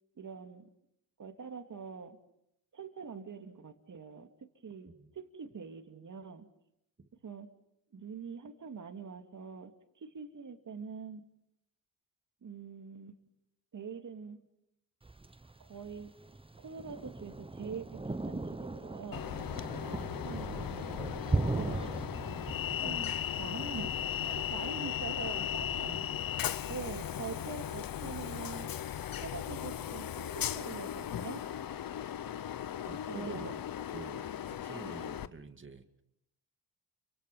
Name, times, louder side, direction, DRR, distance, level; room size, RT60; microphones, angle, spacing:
voice 1, 0.2-0.7 1.2-2.2 2.7-6.5 7.2-7.5 7.9-9.7 10.0-11.3 12.4-13.2 13.7-14.4 15.6-16.2 16.6-19.3 19.8-21.2 21.5-21.9 22.8-23.9 24.2-25.9 26.7-28.7 29.2-31.4 33.1-33.6, right 6 dB, 50° right, 6 dB, 2.6 m, -44 dB
Thunder, 15.0-27.0, right 2 dB, 15° right, 1.1 m, -39 dB
Train, 19.1-35.3, left 10 dB, 60° left, 1.0 m, -37 dB
voice 2, 20.1-20.5 25.4-26.2 32.8-33.6 33.9-35.8, right 3 dB, 30° right, 7 dB, 2.6 m, -47 dB
29.5 x 25.0 x 5.6 m, 0.78 s
supercardioid pair, 65°, 39 cm